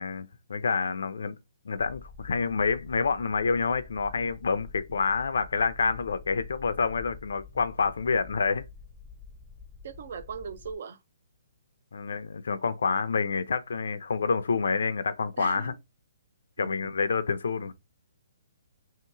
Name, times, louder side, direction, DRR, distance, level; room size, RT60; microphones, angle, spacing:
voice 1, 0.0-1.4 1.6-8.6 11.9-15.7 16.6-17.7, left 5 dB, 80° left, 0.6 m, -28 dB
sound 1, 1.7-10.7, left 5 dB, ahead, 0.7 m, -48 dB
voice 2, 9.8-11.0 15.4-15.8 16.6-16.9, right 6 dB, 50° right, 0.5 m, -39 dB
3.1 x 2.9 x 4.5 m
hypercardioid pair, 170°, 0 cm